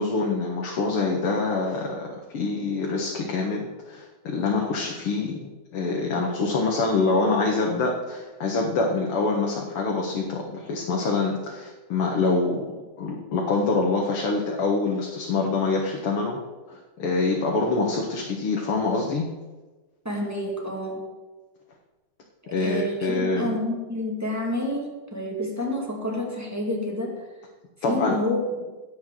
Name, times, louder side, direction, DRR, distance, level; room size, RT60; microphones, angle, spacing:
voice 1, 0.0-12.7 13.0-16.4 16.7-19.3 22.5-23.6 27.8-28.2, left 3 dB, 80° left, 0 dB, 2.4 m, -25 dB
voice 2, 20.0-21.1 22.4-27.3 27.9-28.4, left 1 dB, 5° right, -1 dB, 2.2 m, -29 dB
16.5 x 5.7 x 7.8 m, 1.2 s
omnidirectional pair, 2.4 m